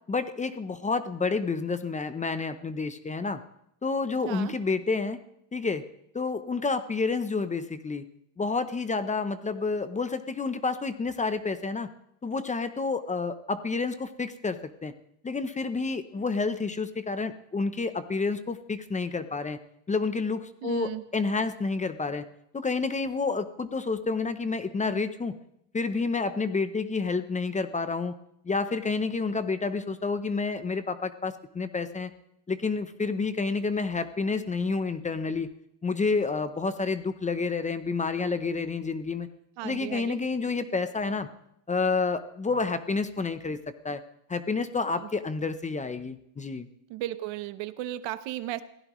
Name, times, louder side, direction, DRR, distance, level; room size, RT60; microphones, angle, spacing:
voice 1, 0.1-3.4 3.8-5.2 5.5-5.8 6.1-8.0 8.4-11.9 12.2-14.9 15.2-19.6 19.9-22.2 22.5-25.3 25.7-28.2 28.4-32.1 32.5-35.5 35.8-39.3 39.6-41.3 41.7-43.6 43.8-44.0 44.3-46.7, left 4 dB, 15° left, 11 dB, 0.7 m, -29 dB
voice 2, 20.6-21.0 39.6-40.2 45.0-45.1 46.9-48.6, right 14 dB, 75° right, 13 dB, 1.0 m, -35 dB
22.0 x 16.0 x 3.1 m, 0.76 s
cardioid pair, 145°, 45 cm